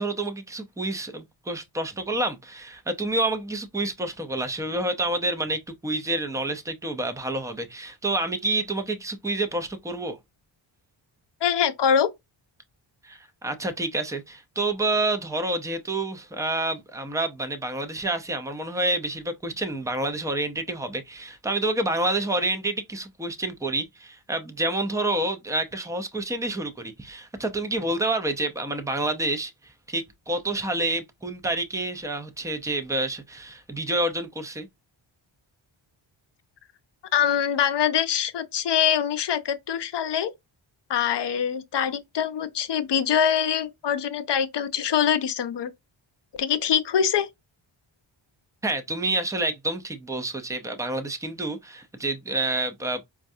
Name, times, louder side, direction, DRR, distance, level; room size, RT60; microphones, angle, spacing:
voice 1, 0.0-10.2 13.0-34.7 48.6-53.0, right 2 dB, 5° right, 0.6 m, -28 dB
voice 2, 11.4-12.1 37.1-40.3 40.9-45.7 46.4-47.3, left 8 dB, 55° left, 0.7 m, -24 dB
4.5 x 2.4 x 2.7 m
cardioid pair, 70°, 50 cm